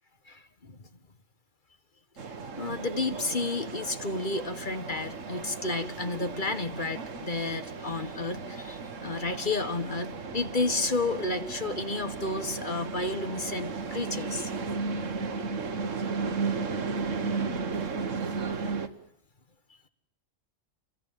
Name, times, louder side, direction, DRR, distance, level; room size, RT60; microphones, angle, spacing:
voice 1, 0.3-0.9 2.5-14.6 17.8-18.3, left 3 dB, 40° left, 10 dB, 1.7 m, -32 dB
sound 1, 2.2-18.9, right 4 dB, 75° right, 1.7 m, -35 dB
29.5 x 22.5 x 9.2 m, 0.71 s
omnidirectional pair, 1.3 m